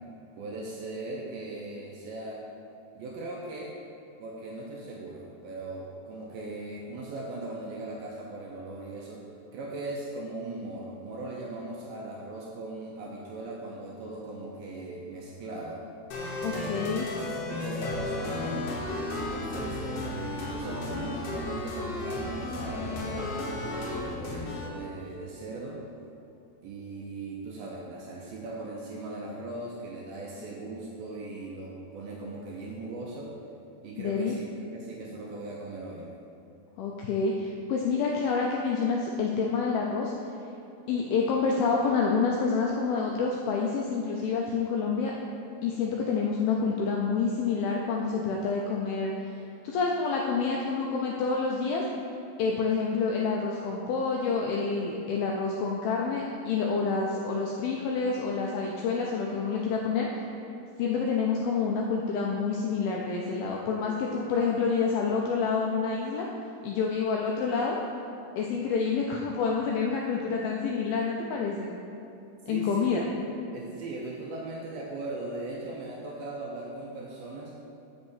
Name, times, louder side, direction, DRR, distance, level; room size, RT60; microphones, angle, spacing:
voice 1, 0.4-2.4 2.9-3.8 4.2-9.2 9.5-15.8 16.4-16.9 17.5-18.8 19.3-25.8 26.6-33.3 33.8-34.4 34.7-36.1 72.5-73.3 73.5-77.5, right 2 dB, 80° right, -3 dB, 2.2 m, -39 dB
sound 1, 16.1-24.7, left 2 dB, 65° left, 2.3 m, -34 dB
voice 2, 16.4-17.1 33.9-34.4 36.8-40.1 40.9-45.1 45.6-49.1 49.6-51.8 52.4-60.2 60.8-66.3 66.6-67.8 68.4-71.7 72.5-73.1, left 5 dB, 85° left, -1 dB, 2.1 m, -28 dB
6.6 x 5.3 x 7.2 m, 2.8 s
omnidirectional pair, 4.9 m